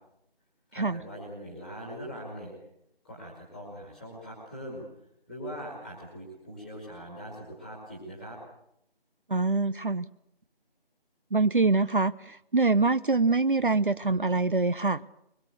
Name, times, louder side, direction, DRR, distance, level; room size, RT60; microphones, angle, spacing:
voice 1, 0.7-2.5 3.0-4.8 5.3-8.4, equal, ahead, -4 dB, 2.1 m, -41 dB
voice 2, 9.3-10.1 11.3-15.0, right 3 dB, 55° right, 15 dB, 0.9 m, -24 dB
24.0 x 21.5 x 8.1 m, 0.77 s
figure-of-eight pair, 175°, 30 cm